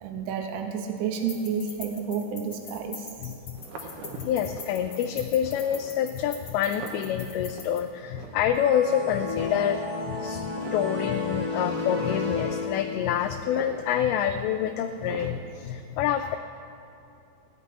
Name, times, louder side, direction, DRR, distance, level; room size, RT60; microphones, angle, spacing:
voice 1, 0.0-3.3 10.9-11.2 16.2-16.4, right 6 dB, 90° right, 4 dB, 3.2 m, -31 dB
sound 1, 1.1-7.8, left 5 dB, 60° left, 1.5 m, -44 dB
voice 2, 3.2-9.8 10.1-16.4, left 9 dB, 90° left, 7 dB, 2.5 m, -27 dB
sound 2, 3.6-15.3, right 3 dB, 75° right, 1.9 m, -45 dB
sound 3, 8.5-13.2, left 3 dB, 30° right, 4.0 m, -32 dB
16.5 x 6.0 x 9.9 m, 2.7 s
omnidirectional pair, 5.5 m